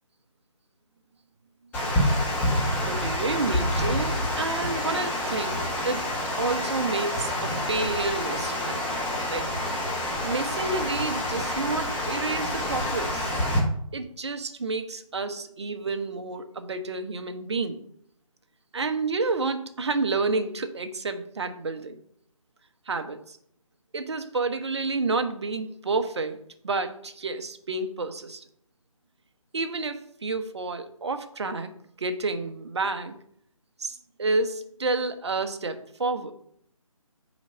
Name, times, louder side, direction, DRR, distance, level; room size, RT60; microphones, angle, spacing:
Water, 1.7-13.6, left 1 dB, 10° left, 1.4 m, -28 dB
voice 1, 2.8-9.0 9.3-9.5 10.2-13.3 13.9-17.8 18.7-22.0 22.9-23.4 23.9-28.4 29.5-33.1 33.8-36.3, right 3 dB, 50° right, 9 dB, 0.9 m, -30 dB
6.1 x 5.1 x 5.4 m, 0.67 s
figure-of-eight pair, 160°, 18 cm